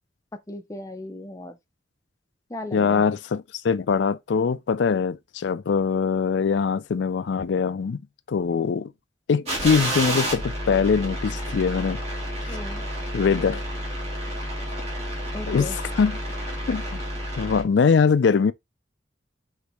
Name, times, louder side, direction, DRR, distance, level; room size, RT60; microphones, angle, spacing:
voice 1, 0.5-1.6 2.5-3.0 8.5-8.7 12.5-12.9 15.3-15.8, left 1 dB, 15° left, 0.6 m, -36 dB
voice 2, 2.7-8.0 8.3-8.9 9.3-12.0 12.4-12.6 13.1-13.6 15.5-16.2 16.7-17.0 17.4-18.5, left 5 dB, 65° left, 0.4 m, -22 dB
sound 1, 9.5-17.6, equal, 35° right, 1.9 m, -30 dB
5.0 x 3.2 x 3.0 m
head